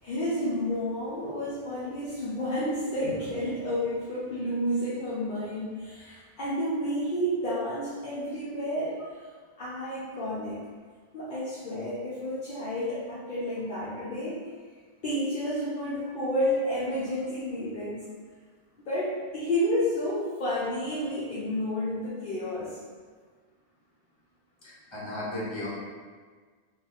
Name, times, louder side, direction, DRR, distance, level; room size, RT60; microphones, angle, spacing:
voice 1, 0.0-9.2 9.6-10.6 11.1-14.4 15.0-18.1 18.8-22.8, equal, 55° left, -9 dB, 0.8 m, -30 dB
voice 2, 24.6-25.7, left 1 dB, 30° left, -8 dB, 1.1 m, -35 dB
3.0 x 2.6 x 3.9 m, 1.5 s
omnidirectional pair, 1.0 m